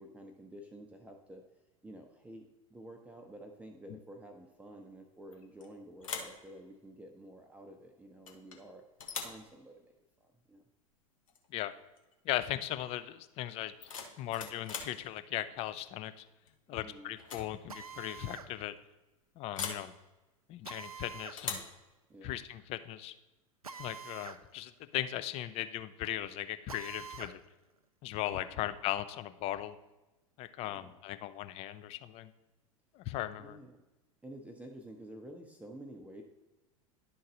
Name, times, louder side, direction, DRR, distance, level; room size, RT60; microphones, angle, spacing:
voice 1, 0.0-1.4 1.8-8.8 9.2-9.9 10.2-10.6 16.7-17.2 22.1-22.4 28.4-28.7 30.6-30.9 33.4-33.8 34.2-36.2, right 1 dB, 10° right, 2 dB, 0.6 m, -50 dB
sound 1, 5.3-5.7 6.0-6.4 8.3-8.6 9.0-9.4 11.3-11.5 11.8-12.1 13.6-15.0 16.5-16.8 17.2-17.5 17.8-17.9 19.5-19.9 21.4-21.8, left 6 dB, 65° left, 1.1 m, -41 dB
voice 2, 12.3-13.7 14.2-16.2 16.7-18.7 19.4-19.9 20.5-21.6 22.2-23.1 23.8-27.4 28.0-29.8 30.4-32.3 33.0-33.6, left 13 dB, 35° left, 11 dB, 0.5 m, -38 dB
Drill, 17.7-18.5 20.6-21.4 23.6-24.4 24.8-24.9 26.7-27.4, right 6 dB, 85° right, 0.4 m, -46 dB
11.0 x 3.9 x 4.1 m, 1.1 s
figure-of-eight pair, 85°, 18 cm